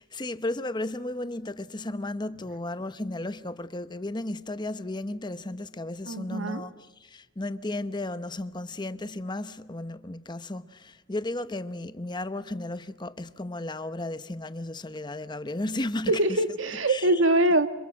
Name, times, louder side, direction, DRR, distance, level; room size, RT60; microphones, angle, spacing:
voice 1, 0.0-6.7 7.0-16.4 16.9-17.2, left 2 dB, 25° left, 0.9 m, -34 dB
voice 2, 6.1-6.6 16.1-17.7, right 1 dB, 90° right, 1.7 m, -23 dB
29.5 x 26.5 x 6.1 m
head